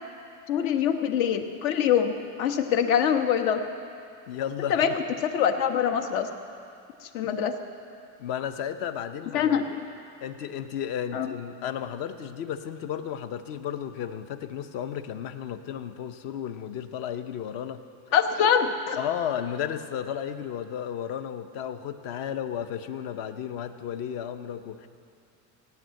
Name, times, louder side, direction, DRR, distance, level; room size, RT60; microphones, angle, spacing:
voice 1, 0.5-2.1 2.4-3.6 4.7-6.3 7.0-7.5 9.3-9.6 11.1-11.3 18.1-19.0, left 8 dB, 70° left, 6 dB, 1.3 m, -24 dB
voice 2, 4.3-4.9 7.2-7.3 8.2-9.5 10.2-17.8 19.0-24.9, left 9 dB, 55° left, 10 dB, 0.9 m, -33 dB
18.5 x 9.5 x 7.7 m, 2.5 s
cardioid pair, 170°, 43 cm